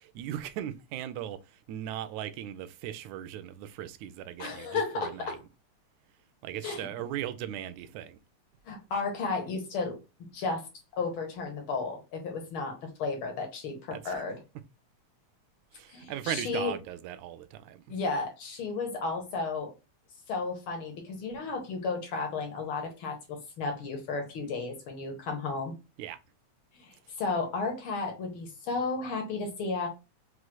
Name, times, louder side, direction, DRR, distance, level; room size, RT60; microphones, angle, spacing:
voice 1, 0.0-5.4 6.4-8.2 13.9-14.2 15.7-17.8 26.0-26.2, right 11 dB, 80° right, 1.9 m, -38 dB
voice 2, 4.4-5.4 6.6-6.9 8.7-10.0 10.3-10.7 11.0-14.4 15.9-16.7 17.9-19.7 20.3-25.7 26.7-29.9, left 4 dB, 55° left, 1.7 m, -33 dB
6.0 x 3.1 x 2.2 m
omnidirectional pair, 3.5 m